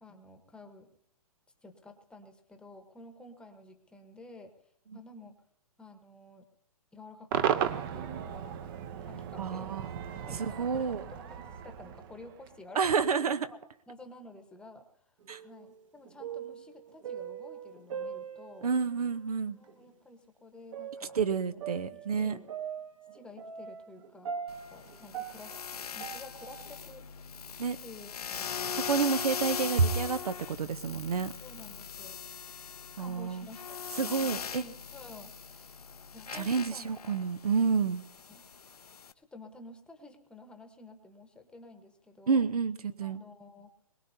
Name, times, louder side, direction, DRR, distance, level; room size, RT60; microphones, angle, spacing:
voice 1, 0.0-0.9 1.6-4.5 4.9-5.4 5.8-6.5 6.9-8.6 9.0-9.7 10.1-13.1 13.5-13.6 13.9-18.7 19.6-21.2 21.5-21.6 21.9-22.5 23.1-24.3 24.7-27.0 27.8-28.8 31.0-32.2 33.0-35.8 36.1-36.9 38.3-38.4 39.1-42.4 43.0-43.7, left 2 dB, 5° left, 6 dB, 1.1 m, -51 dB
Cheering / Crowd / Fireworks, 7.3-12.6, right 9 dB, 35° right, 0.8 m, -35 dB
voice 2, 9.4-9.8 10.4-11.0 12.7-13.4 15.3-15.4 18.6-19.6 21.1-22.4 27.6-27.8 28.7-31.3 33.0-33.5 34.0-34.6 36.3-38.0 42.3-43.2, right 5 dB, 80° right, 12 dB, 0.9 m, -29 dB
sound 1, 15.3-15.8 16.1-18.9 19.6-19.7 20.7-26.7, right 7 dB, 55° right, 1.8 m, -41 dB
sound 2, 24.5-39.1, left 7 dB, 85° left, 0.8 m, -40 dB
22.0 x 19.0 x 2.7 m, 0.69 s
hypercardioid pair, 140°, 19 cm